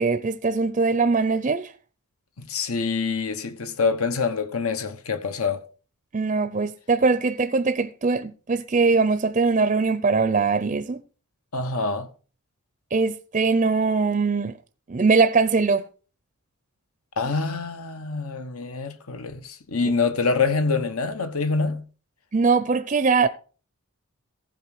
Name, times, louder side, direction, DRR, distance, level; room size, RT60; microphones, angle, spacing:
voice 1, 0.0-1.7 6.1-11.0 12.9-14.6 14.9-15.8 22.3-23.3, right 4 dB, 35° right, 0.5 m, -21 dB
voice 2, 2.4-5.6 11.5-12.1 17.2-21.8, left 4 dB, 80° left, 1.2 m, -26 dB
14.5 x 5.1 x 6.0 m
head